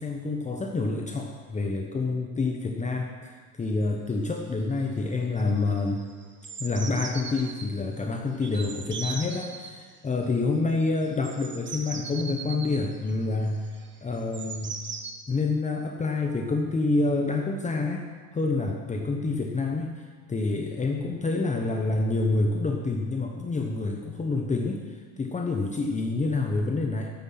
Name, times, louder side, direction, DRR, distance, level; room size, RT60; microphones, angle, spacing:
voice 1, 0.0-6.1 6.6-13.7 14.0-14.7 15.3-18.1 18.3-27.1, left 3 dB, 15° left, 2 dB, 1.0 m, -28 dB
sound 1, 3.8-3.9 4.1-4.5 4.8-5.1 5.4-7.7 8.4-9.7 10.8-15.1, right 5 dB, 30° right, 1.2 m, -39 dB
13.0 x 10.0 x 5.8 m, 1.5 s
cardioid pair, 135°, 41 cm